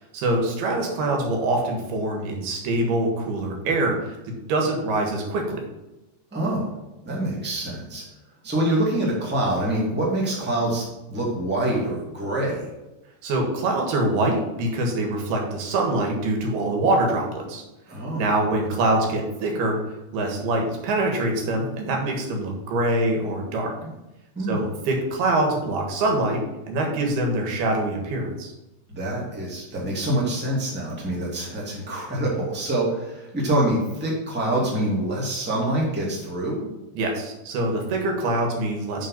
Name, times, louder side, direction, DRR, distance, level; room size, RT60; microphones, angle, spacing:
voice 1, 0.1-4.1 4.5-5.6 13.2-17.6 18.2-19.8 20.1-23.7 24.5-26.4 26.7-28.5 37.0-39.1, right 2 dB, 70° right, 1 dB, 3.4 m, -24 dB
voice 2, 6.3-6.7 7.0-8.0 8.4-12.7 17.9-18.2 23.8-23.9 24.3-24.7 28.9-36.7, right 1 dB, 5° right, -4 dB, 1.0 m, -25 dB
6.5 x 6.3 x 5.7 m, 1.0 s
omnidirectional pair, 4.9 m